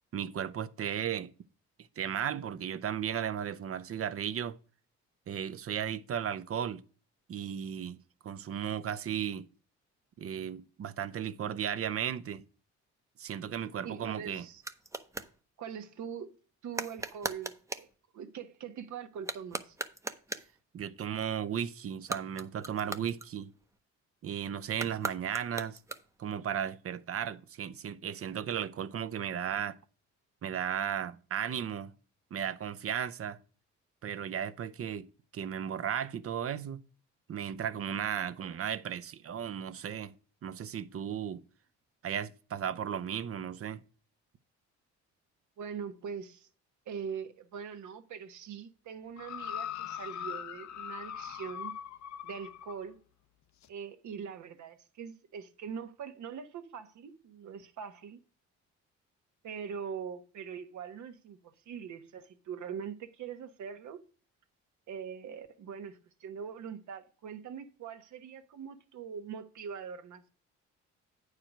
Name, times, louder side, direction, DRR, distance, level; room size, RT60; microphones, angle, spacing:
voice 1, 0.1-1.3 2.0-4.6 5.3-6.8 7.3-8.0 8.2-9.5 10.2-12.4 13.2-14.5 20.7-23.5 24.2-25.8 26.2-29.8 30.4-31.9 32.3-33.4 34.0-35.1 35.3-36.8 37.3-40.1 40.4-41.4 42.0-43.8, right 8 dB, 50° right, 0.7 m, -35 dB
sound 1, 13.6-15.4 16.7-17.9 19.1-20.6 21.9-23.8 24.7-26.3, right 2 dB, 10° right, 0.7 m, -40 dB
voice 2, 13.8-14.6 15.6-16.3 16.6-17.9 18.1-19.8 45.6-46.5 46.9-51.7 52.2-53.0 53.7-58.2 59.4-64.0 64.9-70.3, right 7 dB, 70° right, 1.2 m, -42 dB
sound 2, 49.2-52.8 53.6-53.7, left 9 dB, 65° left, 0.7 m, -40 dB
8.9 x 4.8 x 5.9 m
cardioid pair, 90°, 30 cm